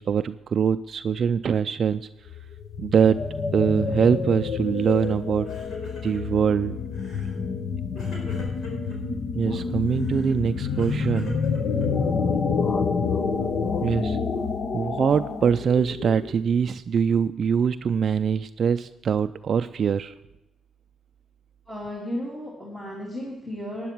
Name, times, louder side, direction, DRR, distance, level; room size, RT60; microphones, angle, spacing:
voice 1, 0.0-2.1 2.8-3.2 3.5-5.5 6.0-6.8 7.1-7.2 9.3-11.4 13.8-14.2 14.7-20.1, right 7 dB, 55° right, 10 dB, 0.3 m, -23 dB
sound 1, 2.3-16.4, left 5 dB, 55° left, 0.9 m, -28 dB
Crying sobbing, 4.8-5.1 5.4-6.4 6.9-7.4 7.9-9.0 9.9-12.1, left 2 dB, 70° left, 4.6 m, -43 dB
voice 2, 21.7-23.9, equal, 15° left, -4 dB, 2.8 m, -34 dB
12.0 x 10.0 x 4.5 m, 0.99 s
cardioid pair, 90°, 0 cm